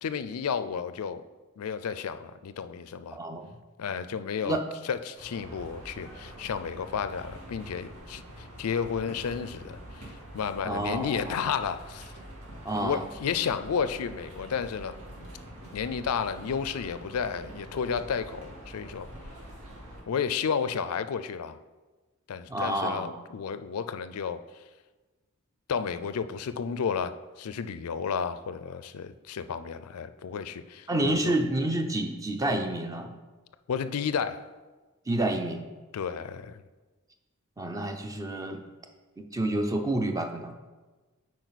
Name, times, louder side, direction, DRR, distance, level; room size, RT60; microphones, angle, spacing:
voice 1, 0.0-1.2 1.6-3.2 3.8-4.6 4.8-9.8 10.3-12.1 12.7-14.9 15.7-19.1 20.1-21.6 22.3-24.4 25.7-27.1 27.4-31.3 33.7-34.4 35.9-36.6, left 6 dB, 85° left, 12 dB, 0.4 m, -32 dB
voice 2, 3.1-3.5 4.4-4.6 10.6-11.4 12.6-13.0 22.5-23.1 30.9-33.1 35.1-35.6 37.6-38.6 39.2-40.5, right 1 dB, 15° right, 5 dB, 0.5 m, -29 dB
sound 1, 5.1-20.0, equal, 75° right, 2.4 m, -45 dB
9.1 x 4.8 x 4.1 m, 1.2 s
head